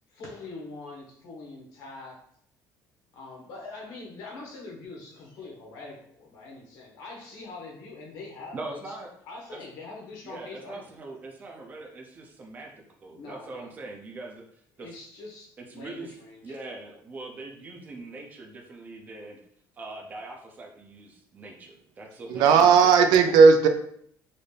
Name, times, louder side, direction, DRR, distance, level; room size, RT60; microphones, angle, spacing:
voice 1, 0.1-2.3 3.1-8.9 9.2-11.2 13.1-13.7 14.8-16.6 22.9-23.4, left 3 dB, 70° left, -2 dB, 1.3 m, -43 dB
voice 2, 8.5-9.1 9.5-9.6 10.2-14.5 14.8-14.9 15.7-16.1 16.4-19.4 19.8-22.9, right 2 dB, 25° right, 2 dB, 0.6 m, -42 dB
voice 3, 22.3-23.7, right 5 dB, 80° right, 7 dB, 0.5 m, -16 dB
4.1 x 2.6 x 3.3 m, 0.65 s
cardioid pair, 170°, 7 cm